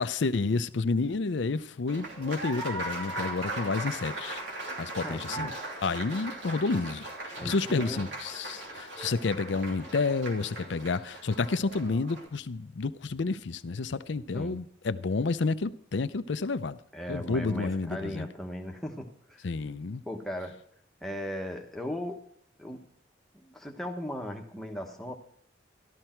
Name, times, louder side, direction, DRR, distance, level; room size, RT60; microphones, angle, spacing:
voice 1, 0.0-4.4 4.8-5.5 5.8-16.8 17.1-18.3 19.4-20.0, left 4 dB, 75° left, 0.5 m, -30 dB
Applause, 1.9-12.3, right 2 dB, 70° right, 2.9 m, -38 dB
voice 2, 5.0-5.5 7.4-8.1 14.3-14.6 16.9-19.5 20.0-20.5 21.0-22.2 22.6-22.8 23.5-25.1, equal, ahead, 1.2 m, -37 dB
13.0 x 12.5 x 4.5 m
head